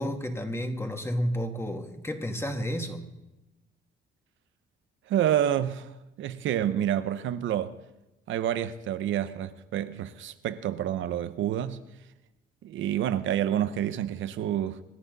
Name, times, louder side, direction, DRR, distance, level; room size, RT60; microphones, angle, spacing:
voice 1, 0.0-3.0, equal, 10° left, 2.3 m, -31 dB
voice 2, 5.1-7.7 8.3-11.8 12.6-14.8, right 11 dB, 75° right, 0.8 m, -28 dB
26.0 x 11.0 x 4.1 m
cardioid pair, 90°, 20 cm